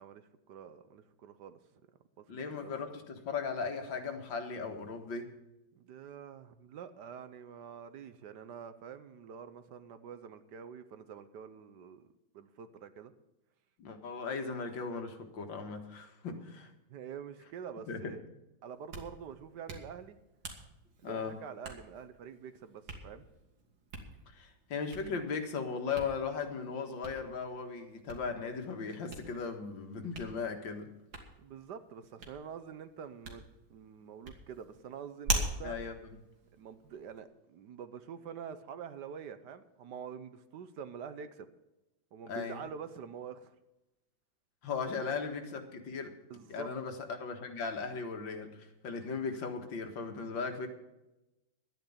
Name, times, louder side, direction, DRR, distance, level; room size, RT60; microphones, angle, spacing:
voice 1, 0.0-1.6 2.2-2.3 2.6-2.7 5.8-13.1 16.3-16.4 16.9-18.2 18.6-20.2 21.0-23.3 31.4-33.4 33.7-35.8 36.6-41.5 42.1-43.6 44.9-45.1 46.3-46.7, right 7 dB, 65° right, 11 dB, 1.3 m, -46 dB
voice 2, 2.3-5.3 13.8-16.7 17.9-18.1 21.0-21.4 24.3-30.9 35.6-36.1 42.3-42.6 44.6-46.1 46.5-50.7, left 5 dB, 70° left, 6 dB, 2.3 m, -37 dB
Hands, 18.7-37.2, right 2 dB, 85° right, 2.9 m, -44 dB
12.5 x 9.7 x 7.2 m, 0.95 s
omnidirectional pair, 2.1 m